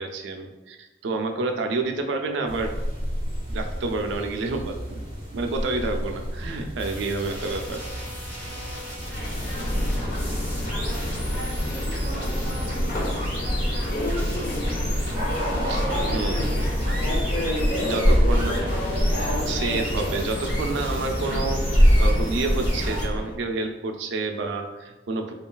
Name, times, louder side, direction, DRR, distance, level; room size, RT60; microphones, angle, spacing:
voice 1, 0.0-2.7 3.5-7.8 15.7-15.8 16.1-16.4 17.8-18.6 19.2-25.3, right 3 dB, 80° right, 4 dB, 0.4 m, -29 dB
sound 1, 2.5-21.2, equal, 30° right, 0.7 m, -35 dB
sound 2, 6.8-23.1, equal, 30° left, 1.1 m, -37 dB
Subway metro underground, 9.0-23.3, equal, 50° left, 0.4 m, -24 dB
voice 2, 9.1-19.3, right 1 dB, 5° left, -12 dB, 0.7 m, -41 dB
3.1 x 2.3 x 2.2 m, 1.1 s
head